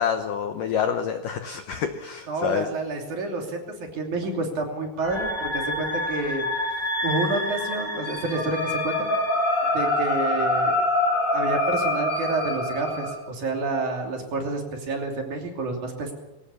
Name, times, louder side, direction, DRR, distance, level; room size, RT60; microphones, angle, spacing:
voice 1, 0.0-2.7, left 8 dB, 70° left, 8 dB, 2.0 m, -27 dB
voice 2, 2.3-9.1 9.7-10.8 11.3-16.1, right 3 dB, 45° right, 2 dB, 4.1 m, -29 dB
sound 1, 5.0-13.1, left 1 dB, 5° left, 3.6 m, -26 dB
21.5 x 18.0 x 7.1 m, 0.99 s
omnidirectional pair, 5.1 m